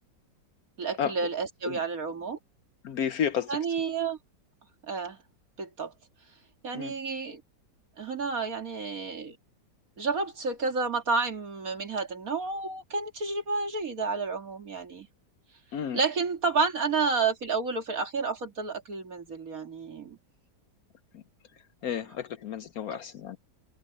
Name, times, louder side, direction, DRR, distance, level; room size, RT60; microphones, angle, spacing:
voice 1, 0.8-2.4 3.5-4.2 4.8-5.2 5.6-5.9 6.6-7.4 8.0-9.4 10.0-15.1 15.9-20.2, right 4 dB, 50° right, 2.6 m, -30 dB
voice 2, 2.8-3.6 6.7-6.9 15.7-16.0 21.1-21.2 21.8-23.4, left 8 dB, 65° left, 1.1 m, -31 dB
omnidirectional pair, 1.9 m